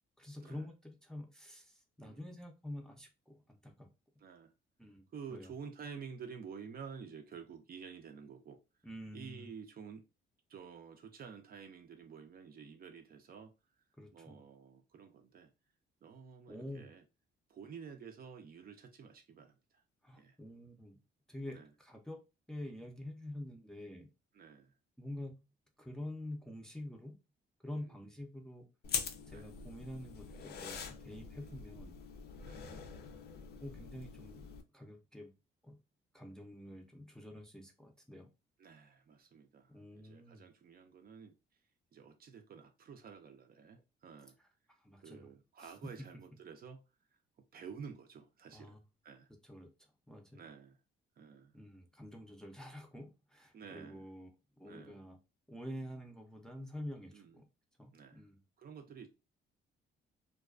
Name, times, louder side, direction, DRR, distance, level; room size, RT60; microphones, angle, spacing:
voice 1, 0.2-3.9 4.8-5.0 5.3-5.5 8.8-9.5 14.0-14.4 16.5-16.9 20.0-21.0 21.3-22.2 22.5-24.1 25.0-25.5 25.8-27.2 27.6-28.7 29.3-32.0 33.6-34.5 34.7-35.3 35.6-35.8 36.1-38.3 39.7-40.5 44.8-45.3 45.6-45.7 48.5-48.8 49.4-49.7 50.1-50.5 51.5-54.3 54.6-55.2 55.5-57.4 57.8-58.4, left 1 dB, 5° left, 0.5 m, -47 dB
voice 2, 2.0-2.4 4.2-4.5 5.1-8.6 9.1-10.0 10.5-13.5 14.1-15.5 16.0-17.0 17.5-19.8 20.2-20.4 21.5-21.7 24.3-24.7 27.7-28.1 29.3-29.5 31.4-31.7 32.4-32.8 38.6-41.4 41.9-44.4 45.0-46.8 47.1-47.2 47.5-48.8 49.0-49.3 50.3-50.8 51.2-51.6 53.5-54.0 54.6-55.0 57.1-57.4 57.9-58.2 58.6-59.1, right 6 dB, 50° right, 0.5 m, -51 dB
sound 1, 28.8-34.6, left 6 dB, 55° left, 0.5 m, -44 dB
2.3 x 2.3 x 2.3 m
cardioid pair, 90°, 20 cm